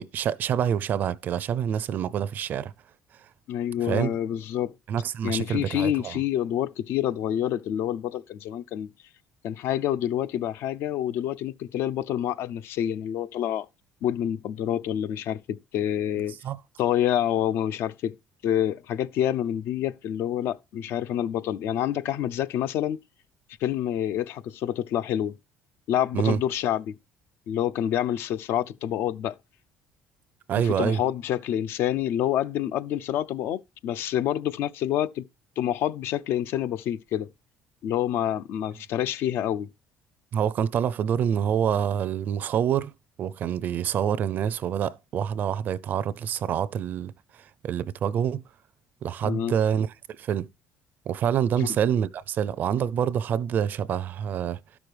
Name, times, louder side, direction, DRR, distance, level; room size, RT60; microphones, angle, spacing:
voice 1, 0.0-2.7 3.8-4.1 4.9-6.2 16.4-16.6 26.1-26.4 30.5-31.0 40.3-42.9 43.2-47.1 47.6-48.4 49.0-49.9 50.2-50.5 51.1-54.6, right 8 dB, 40° right, 0.5 m, -26 dB
voice 2, 3.5-4.7 5.2-8.9 9.4-13.7 14.0-16.4 16.8-18.1 18.4-23.0 23.6-25.3 25.9-26.9 27.5-29.3 30.6-35.2 35.6-37.3 37.8-39.7 49.2-49.5 51.6-51.7, left 11 dB, 60° left, 0.5 m, -27 dB
12.0 x 6.2 x 3.4 m
cardioid pair, 160°, 4 cm